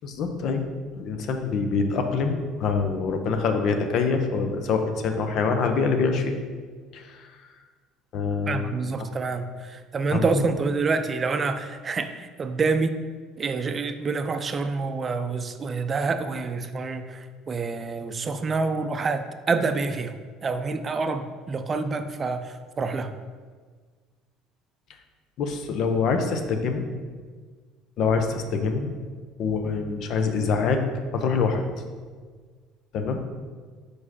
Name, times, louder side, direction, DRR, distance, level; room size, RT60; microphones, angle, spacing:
voice 1, 0.0-0.6 1.0-6.3 6.9-7.3 8.1-9.1 10.1-10.5 25.4-26.8 28.0-28.9 29.4-30.8 31.1-31.6 32.9-33.3, left 5 dB, 60° left, 5 dB, 0.7 m, -25 dB
voice 2, 8.5-13.0 13.4-20.1 20.4-23.1, right 4 dB, 35° right, 9 dB, 0.5 m, -27 dB
4.8 x 4.7 x 4.2 m, 1.5 s
hypercardioid pair, 65°, 0 cm